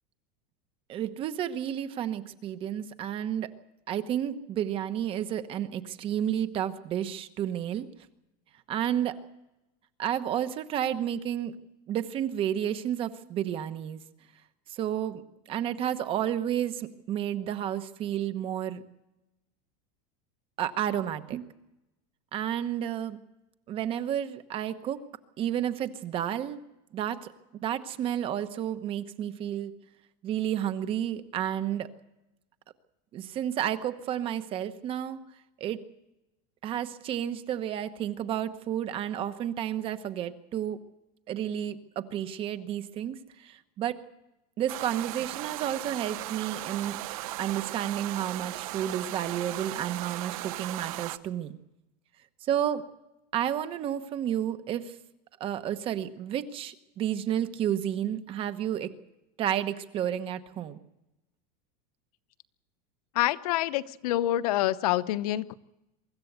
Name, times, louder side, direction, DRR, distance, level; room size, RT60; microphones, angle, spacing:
voice 1, 0.9-3.5 3.9-7.9 8.7-9.2 10.0-11.5 11.9-14.0 14.7-15.2 15.5-18.8 20.6-21.5 22.3-23.2 23.7-25.0 25.4-26.6 26.9-27.3 27.6-29.7 30.2-31.9 33.1-35.2 35.6-35.8 36.6-40.8 41.3-44.0 44.6-47.0 47.4-51.5 52.4-52.8 53.3-55.0 55.4-58.9 59.4-60.8, right 10 dB, 25° right, 10 dB, 1.1 m, -31 dB
sound 1, 44.7-51.2, right 17 dB, 60° right, 0.9 m, -37 dB
voice 2, 63.1-65.5, left 14 dB, 70° left, 14 dB, 0.9 m, -27 dB
24.0 x 14.0 x 8.1 m, 0.92 s
supercardioid pair, 170°, 20 cm